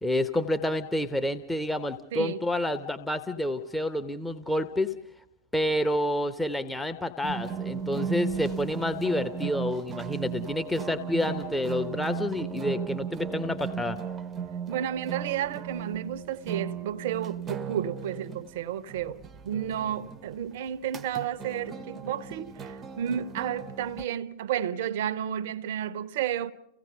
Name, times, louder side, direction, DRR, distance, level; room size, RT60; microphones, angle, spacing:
voice 1, 0.0-4.9 5.5-14.0, left 1 dB, 5° left, 0.9 m, -29 dB
sound 1, 7.2-24.0, right 7 dB, 20° right, 0.8 m, -36 dB
voice 2, 14.7-26.5, right 10 dB, 55° right, 0.7 m, -32 dB
29.0 x 16.5 x 6.6 m
figure-of-eight pair, 90°, 0 cm